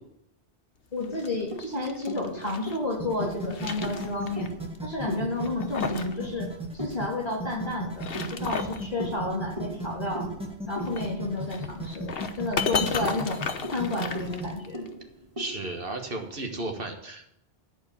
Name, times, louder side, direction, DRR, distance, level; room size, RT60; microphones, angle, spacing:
voice 1, 0.9-4.5 4.8-10.3 10.7-13.4 13.7-14.9, left 2 dB, 40° left, -1 dB, 3.0 m, -31 dB
sound 1, 1.0-2.8 3.2-4.5 4.7-4.8 5.4-6.2 6.4-6.5 7.8-8.9 10.8-14.9, left 5 dB, 65° left, 1.1 m, -34 dB
sound 2, 1.1-7.5 8.2-12.0 12.3-12.4 12.8-16.4, right 1 dB, 30° right, 2.2 m, -40 dB
sound 3, 2.9-14.5, right 1 dB, 5° right, 2.0 m, -36 dB
voice 2, 15.4-17.3, right 2 dB, 60° right, 4 dB, 1.6 m, -34 dB
13.5 x 5.0 x 8.5 m, 0.75 s
omnidirectional pair, 1.0 m